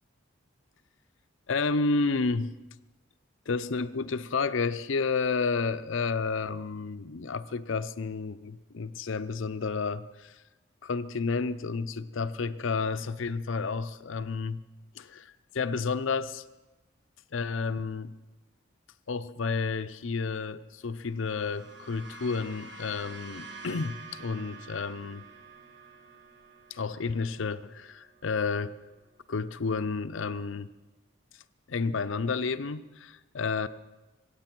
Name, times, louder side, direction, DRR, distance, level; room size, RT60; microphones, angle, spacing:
voice 1, 1.5-2.5 3.5-10.4 10.8-14.6 14.9-16.4 17.3-18.1 19.1-25.3 26.7-28.7 29.3-30.7 31.7-33.7, left 4 dB, 70° left, 13 dB, 0.6 m, -31 dB
sound 1, 21.0-29.4, right 3 dB, 55° right, 1.3 m, -49 dB
24.5 x 8.8 x 6.0 m, 1.1 s
head